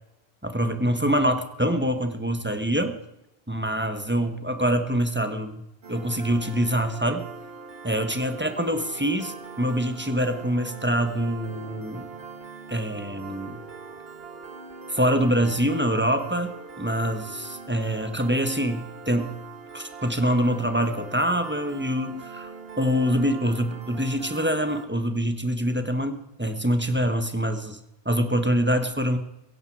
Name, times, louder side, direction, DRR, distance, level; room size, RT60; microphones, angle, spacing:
voice 1, 0.4-3.0 3.5-5.6 5.9-7.3 7.8-12.1 12.7-13.6 14.9-19.4 19.7-22.5 22.8-27.8 28.0-29.2, equal, 10° right, 8 dB, 1.3 m, -25 dB
Piano, 5.8-24.9, right 5 dB, 65° right, 1.7 m, -42 dB
16.5 x 15.5 x 4.7 m, 0.89 s
omnidirectional pair, 1.1 m